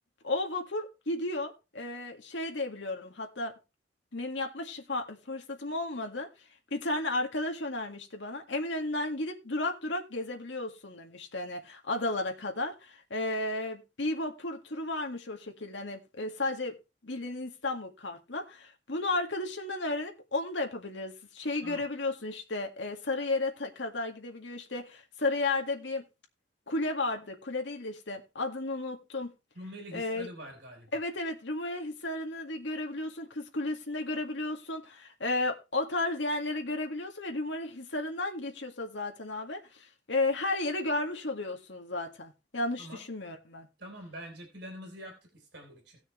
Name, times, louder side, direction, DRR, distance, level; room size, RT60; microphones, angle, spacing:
voice 1, 0.2-3.5 4.1-6.3 6.7-16.8 17.0-26.0 26.7-29.3 29.9-30.3 30.9-43.7, left 2 dB, 75° left, 1.9 m, -33 dB
voice 2, 29.5-30.9 42.8-43.0 43.8-46.0, equal, 65° right, 3.4 m, -45 dB
18.0 x 6.3 x 3.2 m
head